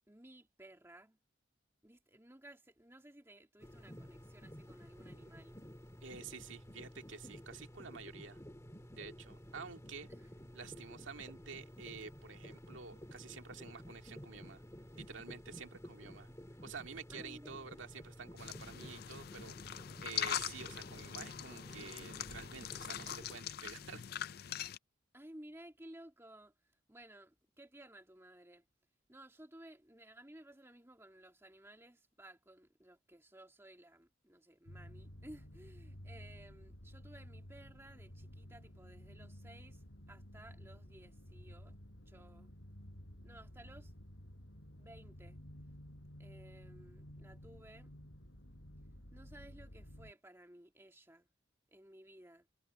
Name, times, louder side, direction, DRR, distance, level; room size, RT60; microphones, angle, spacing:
voice 1, 0.1-1.2 1.8-5.6 10.1-10.4 17.1-17.6 25.1-26.5 26.9-28.7 29.1-41.8 42.1-42.6 43.2-43.9 44.8-45.4 46.2-47.9 49.1-51.3 51.7-52.5, right 1 dB, 15° right, 2.3 m, -57 dB
sound 1, 3.6-23.4, equal, 15° left, 2.0 m, -53 dB
voice 2, 6.0-8.4 9.0-10.1 10.5-14.6 15.0-16.3 16.6-24.3, right 5 dB, 80° right, 2.1 m, -50 dB
sound 2, 18.4-24.8, left 10 dB, 50° left, 0.4 m, -42 dB
sound 3, 34.7-50.1, equal, 75° left, 5.7 m, -53 dB
head